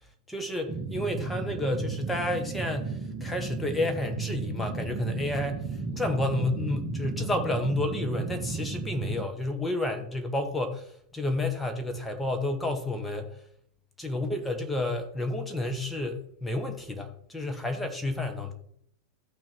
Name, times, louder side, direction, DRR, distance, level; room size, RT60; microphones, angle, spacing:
voice 1, 0.3-5.7 5.9-13.4 14.0-18.5, left 2 dB, 5° left, 4 dB, 1.4 m, -30 dB
sound 1, 0.7-9.2, right 4 dB, 35° right, 1.3 m, -34 dB
14.0 x 6.1 x 4.6 m, 0.70 s
figure-of-eight pair, 90°, 0 cm